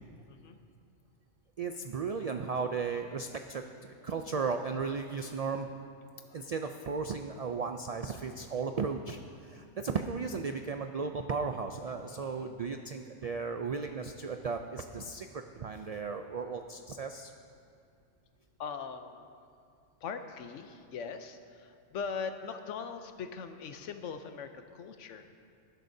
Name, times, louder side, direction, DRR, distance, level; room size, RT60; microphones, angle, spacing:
voice 1, 1.6-5.7 6.3-17.3, right 5 dB, 75° right, 6 dB, 0.3 m, -35 dB
voice 2, 12.1-12.5 18.6-19.3 20.0-25.3, left 6 dB, 90° left, 8 dB, 1.1 m, -41 dB
19.5 x 10.5 x 2.7 m, 2.4 s
omnidirectional pair, 1.2 m